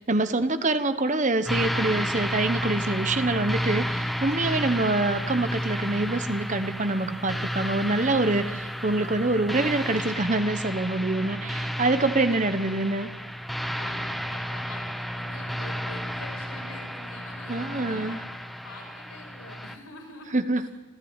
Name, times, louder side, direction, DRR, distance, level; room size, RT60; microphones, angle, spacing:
voice 1, 0.1-11.4 11.8-13.1 17.5-18.2 20.3-20.6, right 2 dB, 35° right, 10 dB, 1.1 m, -25 dB
sound 1, 1.4-19.8, equal, ahead, 0.9 m, -32 dB
voice 2, 11.1-11.5 12.0-12.1 13.7-20.7, left 2 dB, 90° left, 0 dB, 6.9 m, -46 dB
27.0 x 14.5 x 9.0 m, 1.2 s
head